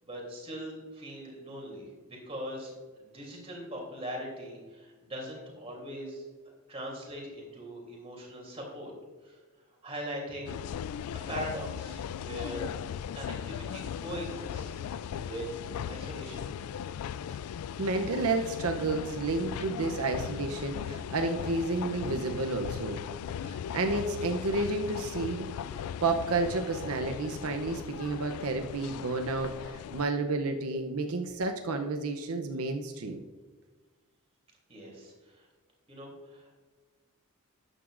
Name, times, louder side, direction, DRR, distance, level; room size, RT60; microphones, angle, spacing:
voice 1, 0.0-8.9 9.2-9.4 9.8-10.6 11.1-12.7 13.1-15.5 15.9-16.5 34.7-35.5 35.9-36.5, equal, 30° right, -1 dB, 3.0 m, -41 dB
sound 1, 10.4-30.0, left 8 dB, 90° left, 0.3 m, -38 dB
voice 2, 17.8-23.0 23.4-25.5 26.0-33.2, right 3 dB, 85° right, 5 dB, 0.7 m, -31 dB
12.5 x 9.1 x 2.5 m, 1.4 s
head